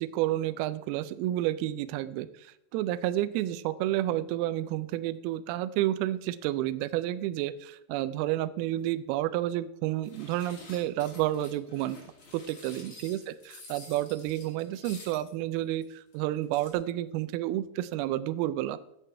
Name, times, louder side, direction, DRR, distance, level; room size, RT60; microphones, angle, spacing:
voice 1, 0.0-12.0 12.3-18.8, right 14 dB, 85° right, 14 dB, 2.2 m, -30 dB
sound 1, 10.0-15.3 15.8-15.9 16.1-16.2 16.4-16.7, left 2 dB, 50° left, 4.1 m, -49 dB
16.0 x 8.3 x 3.3 m, 0.85 s
omnidirectional pair, 4.9 m